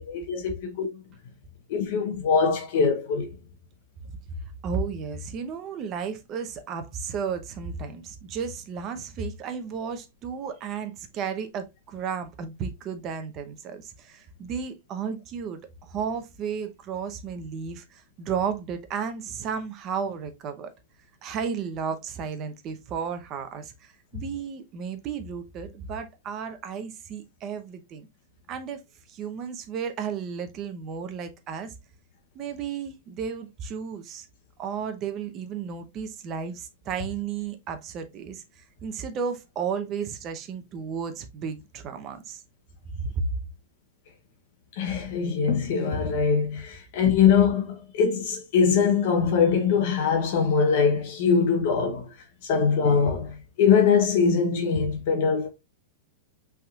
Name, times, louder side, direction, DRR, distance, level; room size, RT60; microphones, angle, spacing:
voice 1, 0.1-1.0 1.7-3.3 44.8-52.1 52.4-55.5, left 6 dB, 50° left, 0.9 m, -22 dB
voice 2, 4.6-20.7 21.2-28.1 28.5-28.8 29.1-31.7 32.3-34.3 34.6-42.4 42.9-43.3, right 6 dB, 30° right, 0.7 m, -33 dB
5.6 x 3.6 x 2.4 m
supercardioid pair, 155°, 0 cm